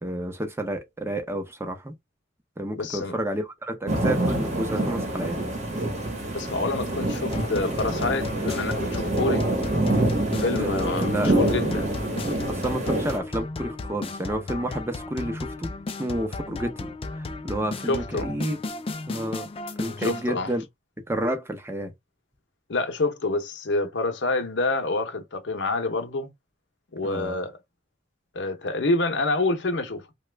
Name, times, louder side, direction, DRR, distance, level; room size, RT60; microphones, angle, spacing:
voice 1, 0.0-1.9 2.6-5.4 10.5-11.3 12.5-15.7 16.0-18.6 19.1-19.5 19.8-20.6 21.1-21.9 27.0-27.4, right 1 dB, 15° right, 0.7 m, -30 dB
voice 2, 2.8-3.1 6.3-9.4 10.4-11.9 17.8-18.3 20.0-20.5 22.7-26.3 26.9-27.6 28.3-30.0, left 2 dB, 70° left, 0.7 m, -27 dB
sound 1, 3.9-13.2, right 1 dB, 40° right, 0.9 m, -26 dB
sound 2, 7.3-20.2, left 3 dB, 30° left, 0.4 m, -35 dB
2.9 x 2.2 x 3.3 m
head